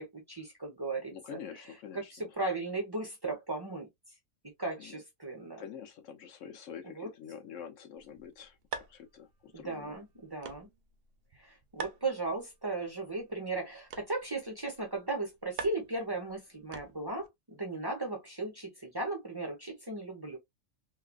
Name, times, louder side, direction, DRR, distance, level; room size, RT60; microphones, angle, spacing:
voice 1, 0.0-1.1 1.9-3.9 4.6-5.6 6.8-7.1 9.5-10.7 11.4-20.4, right 2 dB, 20° right, 0.8 m, -36 dB
voice 2, 1.1-2.3 4.8-4.9 5.6-10.0, left 8 dB, 75° left, 1.0 m, -47 dB
flicking light on and of, 8.0-17.3, right 6 dB, 65° right, 0.6 m, -47 dB
3.2 x 2.3 x 2.3 m
omnidirectional pair, 1.3 m